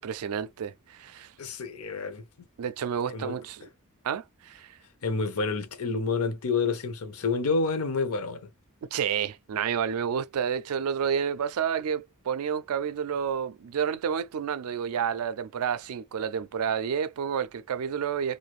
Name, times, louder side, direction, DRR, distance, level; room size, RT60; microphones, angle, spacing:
voice 1, 0.0-1.3 2.6-3.6 4.0-4.7 8.9-18.4, right 7 dB, 85° right, 0.4 m, -30 dB
voice 2, 1.4-2.2 3.1-3.3 5.0-8.5, left 4 dB, 75° left, 0.8 m, -29 dB
2.6 x 2.4 x 3.0 m
head